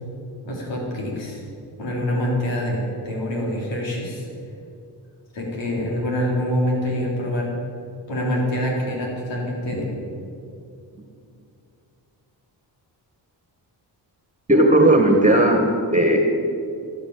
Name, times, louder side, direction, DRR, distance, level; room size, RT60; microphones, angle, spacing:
voice 1, 0.4-1.4 1.8-4.3 5.3-7.5 8.1-9.8, equal, 90° left, -2 dB, 4.3 m, -25 dB
voice 2, 14.5-16.2, right 1 dB, 15° right, 3 dB, 1.7 m, -16 dB
13.0 x 13.0 x 8.5 m, 2.5 s
cardioid pair, 85°, 43 cm